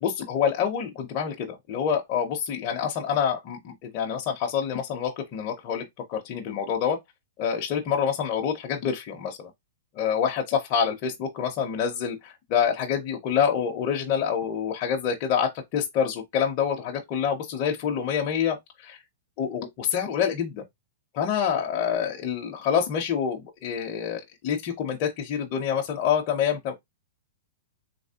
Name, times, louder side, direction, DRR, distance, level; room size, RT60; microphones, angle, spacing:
voice 1, 0.0-7.0 7.4-9.5 9.9-19.0 19.4-20.6 21.1-26.7, left 7 dB, 30° left, 0.6 m, -27 dB
3.3 x 2.8 x 2.8 m
supercardioid pair, 165°, 0 cm